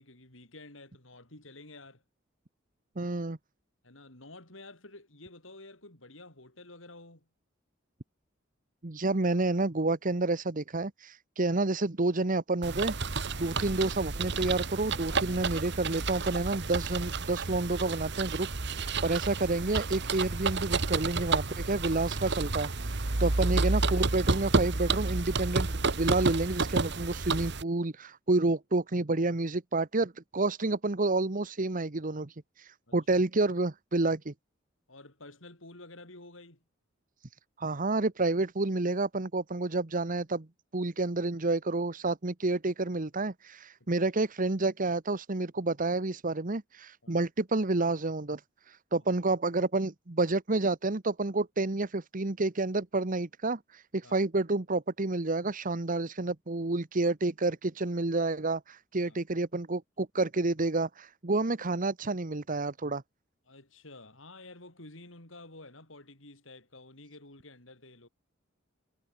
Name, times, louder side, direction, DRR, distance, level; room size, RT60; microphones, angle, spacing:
voice 1, 0.0-2.0 3.8-7.3 13.3-13.5 23.1-23.4 32.9-33.0 34.9-36.6 43.8-44.1 47.0-47.2 54.0-54.2 59.0-59.2 63.5-68.1, left 2 dB, 85° left, 7.5 m, -51 dB
voice 2, 3.0-3.4 8.8-34.3 37.6-40.5 40.7-48.4 48.7-63.0, right 2 dB, 45° right, 1.2 m, -29 dB
sound 1, 12.6-27.6, right 3 dB, 65° right, 1.5 m, -30 dB
Speech synthesizer, 13.2-16.2, right 1 dB, 25° right, 5.7 m, -56 dB
head